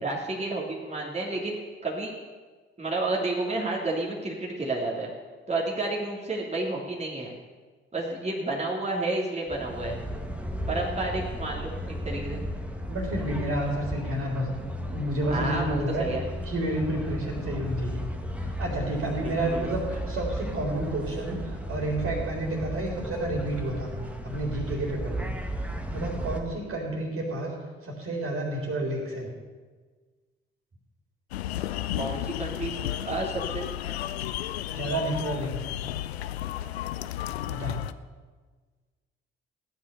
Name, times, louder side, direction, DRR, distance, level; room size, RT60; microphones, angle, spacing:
voice 1, 0.0-1.5 1.8-2.1 2.8-5.1 5.5-7.3 7.9-10.0 10.7-12.4 15.3-16.2 19.2-19.8 32.0-32.8 33.1-33.7, right 2 dB, 20° right, -3 dB, 2.9 m, -30 dB
sound 1, 9.5-26.4, right 1 dB, 5° right, 1.8 m, -35 dB
voice 2, 12.9-14.6 14.9-16.1 16.5-18.1 18.4-23.9 24.2-25.3 25.9-27.5 27.8-29.3 34.7-35.8 37.5-37.9, right 1 dB, 45° right, 0 dB, 4.0 m, -30 dB
sound 2, 31.3-37.9, left 13 dB, 80° left, 0.5 m, -33 dB
16.0 x 9.7 x 6.9 m, 1.4 s
figure-of-eight pair, 45°, 31 cm